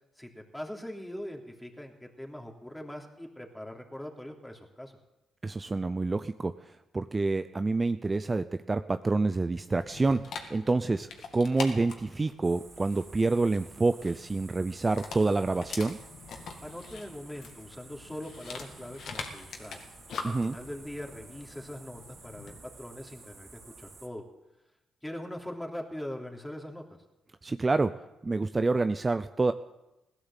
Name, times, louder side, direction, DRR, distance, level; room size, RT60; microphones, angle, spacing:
voice 1, 0.2-4.9 16.6-19.8 20.2-24.3 25.0-27.0, left 1 dB, 10° left, 1 dB, 3.3 m, -42 dB
voice 2, 5.4-6.5 6.9-16.0 20.2-20.6 27.4-27.9 28.2-29.5, right 3 dB, 30° right, 11 dB, 0.6 m, -27 dB
Dog, 9.7-22.6, left 4 dB, 65° left, 2.5 m, -44 dB
sound 1, 12.4-24.1, right 3 dB, 45° right, 3.1 m, -52 dB
17.0 x 11.5 x 7.5 m, 0.97 s
supercardioid pair, 60°, 0 cm